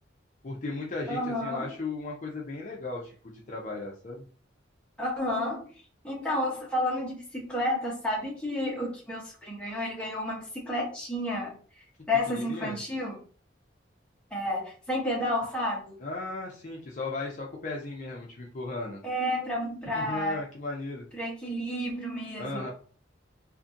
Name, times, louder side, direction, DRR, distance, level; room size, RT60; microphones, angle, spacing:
voice 1, 0.4-4.2 12.3-12.8 16.0-19.0 19.9-21.0 22.4-22.7, left 3 dB, 40° left, -2 dB, 0.5 m, -36 dB
voice 2, 1.1-1.7 5.0-5.7 6.0-11.6 12.1-13.2 14.3-16.0 19.0-20.4 21.1-22.7, left 1 dB, 5° left, -4 dB, 0.8 m, -31 dB
2.6 x 2.5 x 2.5 m, 0.42 s
head